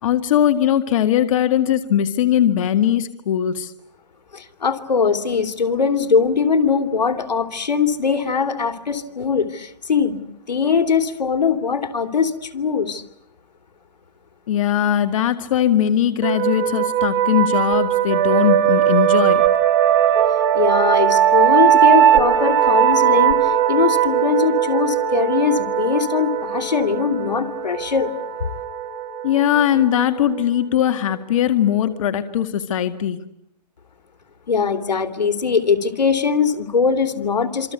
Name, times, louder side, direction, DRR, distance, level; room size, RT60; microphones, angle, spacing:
voice 1, 0.0-3.7 14.5-19.4 29.2-33.2, left 10 dB, 50° left, 10 dB, 2.0 m, -20 dB
voice 2, 4.3-10.2 10.5-13.0 20.5-28.1 34.5-37.7, left 5 dB, 90° left, 9 dB, 3.2 m, -21 dB
sound 1, 16.2-31.6, right 10 dB, 45° right, 4.0 m, -19 dB
27.0 x 26.5 x 8.2 m, 0.75 s
hypercardioid pair, 150°, 21 cm